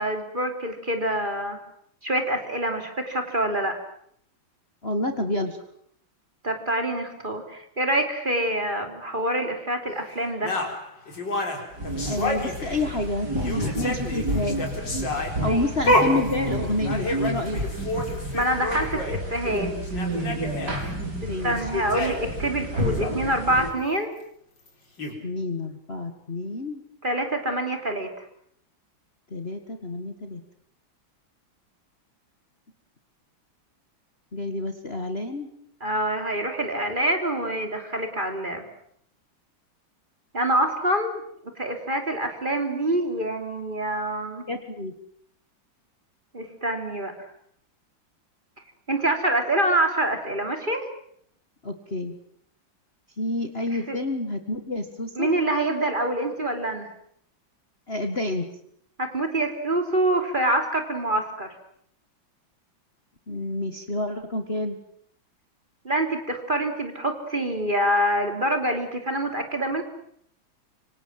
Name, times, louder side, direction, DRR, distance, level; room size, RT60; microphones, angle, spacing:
voice 1, 0.0-1.6 2.0-3.8 6.4-10.6 15.4-15.7 18.3-19.7 21.4-24.1 27.0-28.2 35.8-38.7 40.3-41.2 41.6-44.4 46.3-47.1 48.9-50.9 53.7-54.0 55.1-56.9 59.0-61.6 65.8-69.8, right 1 dB, 25° right, 5 dB, 3.4 m, -26 dB
voice 2, 4.8-5.6 12.0-14.6 15.4-17.6 21.3-21.6 25.2-26.8 29.3-30.4 34.3-35.5 44.5-44.9 51.6-52.1 53.2-55.3 57.9-58.5 63.3-64.8, left 2 dB, 30° left, 6 dB, 1.9 m, -29 dB
sound 1, 10.4-13.0 13.3-19.2 19.6-19.7 19.8-20.8 21.5-22.4 22.7-23.1 24.7-24.8 25.0-25.1, left 1 dB, 60° left, 5.1 m, -29 dB
sound 2, 11.8-23.7, right 1 dB, 55° right, 5.6 m, -30 dB
26.0 x 25.0 x 7.6 m, 0.69 s
omnidirectional pair, 2.2 m